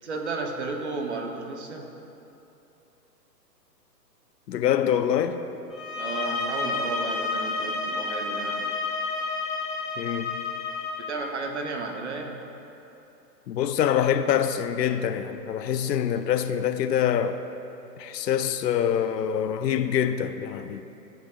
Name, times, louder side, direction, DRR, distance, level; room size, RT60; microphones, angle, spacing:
voice 1, 0.0-1.9 6.0-8.6 11.0-12.4, right 3 dB, 45° right, 0.8 m, -33 dB
voice 2, 4.5-5.4 10.0-10.4 13.5-17.4 18.0-20.8, left 9 dB, 75° left, 0.6 m, -25 dB
sound 1, 5.7-11.1, left 3 dB, ahead, 0.3 m, -30 dB
13.0 x 5.6 x 2.3 m
hypercardioid pair, 170°, 50 cm